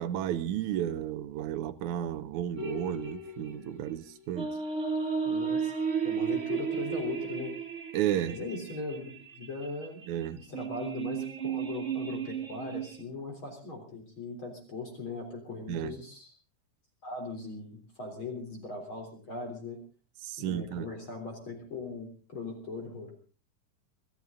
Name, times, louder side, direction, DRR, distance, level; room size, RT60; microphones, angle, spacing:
voice 1, 0.0-4.5 7.9-8.4 10.1-10.4 15.7-15.9 20.2-20.9, right 11 dB, 70° right, 2.2 m, -32 dB
sound 1, 2.6-13.0, right 6 dB, 40° right, 1.0 m, -34 dB
voice 2, 5.3-5.7 6.0-7.5 8.3-16.3 17.0-19.8 20.4-23.1, left 3 dB, 35° left, 4.3 m, -39 dB
24.0 x 14.5 x 3.9 m
omnidirectional pair, 3.8 m